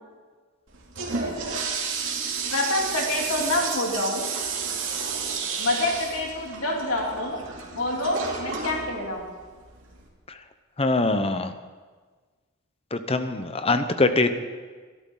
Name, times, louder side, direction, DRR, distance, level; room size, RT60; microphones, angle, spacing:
Toilet flush, 0.7-10.1, right 5 dB, 60° right, 2.9 m, -32 dB
voice 1, 2.5-4.3 5.6-7.4 7.7-9.3, left 2 dB, 70° left, 0 dB, 3.1 m, -27 dB
voice 2, 10.8-11.5 12.9-14.4, left 2 dB, 25° left, 9 dB, 0.9 m, -23 dB
23.0 x 13.0 x 3.9 m, 1.4 s
head